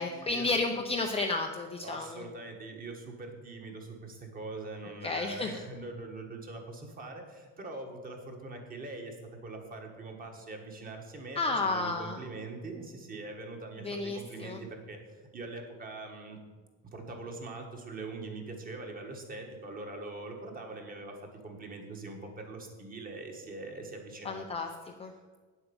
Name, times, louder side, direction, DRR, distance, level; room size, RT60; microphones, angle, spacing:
voice 1, 0.0-2.2 5.0-5.6 11.3-12.2 13.8-14.6 24.2-24.7 25.0-25.1, left 3 dB, 15° left, 2 dB, 0.5 m, -32 dB
voice 2, 1.8-9.2 9.4-16.4 16.9-24.5, right 3 dB, 25° right, 3 dB, 1.5 m, -43 dB
9.1 x 8.0 x 7.0 m, 1.4 s
cardioid pair, 180°, 35 cm